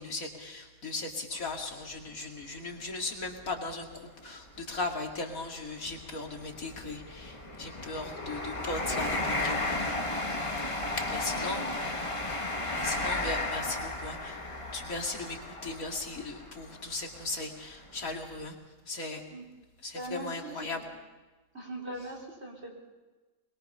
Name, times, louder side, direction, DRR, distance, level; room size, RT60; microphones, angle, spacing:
voice 1, 0.0-9.9 11.0-11.9 12.7-14.4 14.7-18.6 18.9-19.2 19.8-20.8, left 3 dB, 85° left, 2 dB, 2.7 m, -37 dB
sound 1, 1.3-1.5 2.1-2.2 3.3-3.4 3.7-3.9 4.6-17.3 17.8-18.0, left 2 dB, 25° left, 1.6 m, -34 dB
voice 2, 11.2-11.7 19.3-19.4 19.9-20.9 21.5-22.7, right 1 dB, 50° right, -1 dB, 4.3 m, -41 dB
22.5 x 21.5 x 5.6 m, 1.2 s
omnidirectional pair, 1.4 m